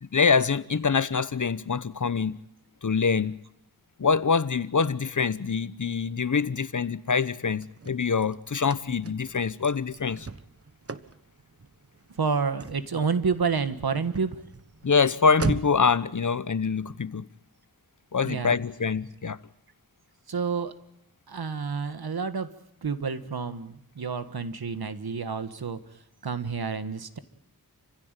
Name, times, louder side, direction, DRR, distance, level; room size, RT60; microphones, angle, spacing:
voice 1, 0.0-2.4 2.8-3.4 4.0-10.3 14.8-17.3 18.1-19.4, left 5 dB, 55° left, 1.0 m, -25 dB
Car / Slam, 7.3-16.0, right 4 dB, 40° right, 1.2 m, -39 dB
voice 2, 12.2-14.4 18.2-18.5 20.3-20.7 21.3-22.5 22.8-25.8 26.2-27.2, right 5 dB, 75° right, 1.6 m, -29 dB
29.0 x 16.0 x 9.1 m
wide cardioid pair, 65°, 37 cm